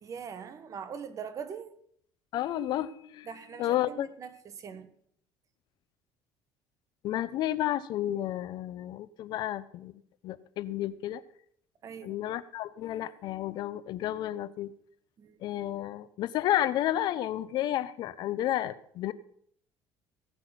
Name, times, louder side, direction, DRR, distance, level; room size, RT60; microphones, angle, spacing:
voice 1, 0.0-1.7 3.2-4.9 11.8-12.2 15.2-15.4, right 7 dB, 40° right, 1.2 m, -42 dB
voice 2, 2.3-3.3 3.6-4.1 7.0-11.2 12.0-14.7 15.4-19.1, left 13 dB, 60° left, 0.6 m, -31 dB
16.0 x 5.9 x 5.8 m
cardioid pair, 115°, 8 cm